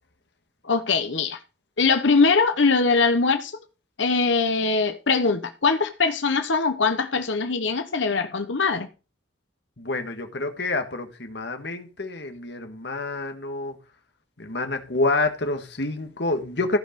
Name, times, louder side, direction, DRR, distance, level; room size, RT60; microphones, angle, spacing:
voice 1, 0.6-1.4 1.8-3.6 4.0-8.9, left 4 dB, 80° left, 1.0 m, -22 dB
voice 2, 9.8-13.8 14.4-16.8, left 2 dB, 60° left, 1.7 m, -28 dB
14.5 x 5.5 x 5.3 m
head